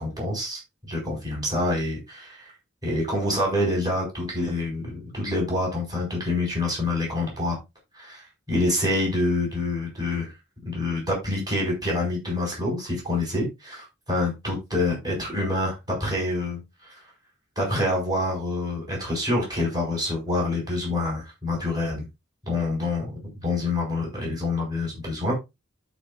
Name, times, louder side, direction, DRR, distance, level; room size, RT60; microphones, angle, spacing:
voice 1, 0.0-2.5 2.8-7.6 7.9-10.3 10.6-16.6 17.6-22.1 22.4-23.1 23.4-25.3, left 2 dB, 20° right, -2 dB, 4.9 m, -27 dB
13.0 x 5.1 x 2.4 m, 0.23 s
head